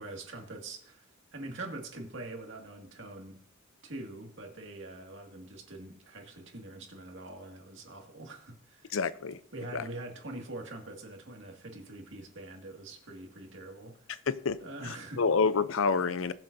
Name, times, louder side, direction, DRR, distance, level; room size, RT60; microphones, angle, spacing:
voice 1, 0.0-3.4 3.8-9.0 9.5-14.1 14.6-15.2, right 2 dB, 70° right, 2.1 m, -44 dB
voice 2, 8.9-9.4 9.7-9.8 14.3-14.6 14.8-16.3, left 5 dB, 85° left, 0.6 m, -28 dB
21.0 x 7.4 x 2.7 m
head